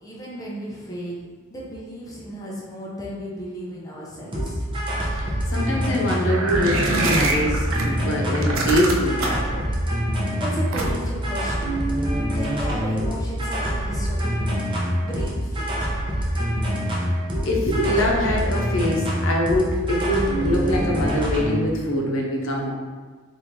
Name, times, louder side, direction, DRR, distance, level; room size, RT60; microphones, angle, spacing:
voice 1, 0.0-4.6 10.2-12.1 12.3-14.6 15.0-15.8, equal, 20° left, -5 dB, 0.5 m, -35 dB
sound 1, 4.3-21.6, equal, 25° right, 0.6 m, -25 dB
voice 2, 5.1-9.7 17.4-22.7, left 1 dB, 90° left, -1 dB, 0.7 m, -24 dB
sound 2, 6.3-7.8 8.3-9.5 10.7-11.2, right 2 dB, 90° right, 0.5 m, -24 dB
3.6 x 2.5 x 3.0 m, 1.5 s
head